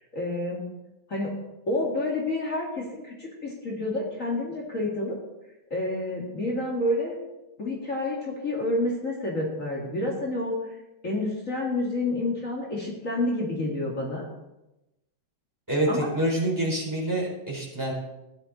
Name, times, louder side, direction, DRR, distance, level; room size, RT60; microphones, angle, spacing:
voice 1, 0.1-0.6 1.1-1.3 1.7-5.2 5.7-7.2 7.6-10.5 11.0-14.2 15.9-16.1, left 2 dB, 40° left, -2 dB, 2.5 m, -29 dB
voice 2, 15.7-17.9, right 1 dB, 10° right, -4 dB, 4.6 m, -26 dB
16.0 x 11.0 x 4.3 m, 0.95 s
omnidirectional pair, 2.3 m